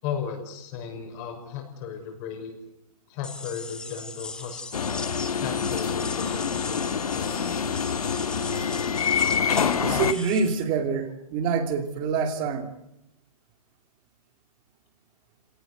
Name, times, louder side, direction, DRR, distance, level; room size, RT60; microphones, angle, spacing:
voice 1, 0.0-2.5 3.1-5.0 5.4-7.5, left 7 dB, 30° left, 4 dB, 6.0 m, -36 dB
sound 1, 3.2-10.6, left 3 dB, 5° left, 1.1 m, -38 dB
sound 2, 4.7-10.1, left 6 dB, 80° left, 1.9 m, -26 dB
voice 2, 9.8-12.7, right 5 dB, 25° right, 8 dB, 2.8 m, -26 dB
27.5 x 18.5 x 8.2 m, 0.85 s
hypercardioid pair, 155°, 19 cm